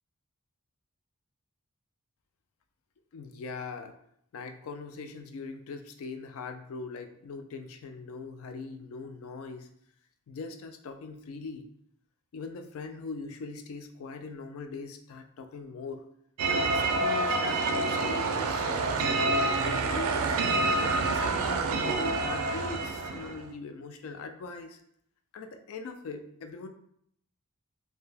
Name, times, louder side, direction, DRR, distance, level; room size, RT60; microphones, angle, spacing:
voice 1, 3.1-4.0 4.3-9.7 10.3-11.7 12.3-16.0 16.5-20.4 21.0-24.8 25.3-26.7, left 4 dB, 65° left, 7 dB, 0.3 m, -41 dB
sound 1, 16.4-23.4, right 3 dB, 75° right, 0.4 m, -27 dB
2.6 x 2.1 x 3.2 m, 0.69 s
head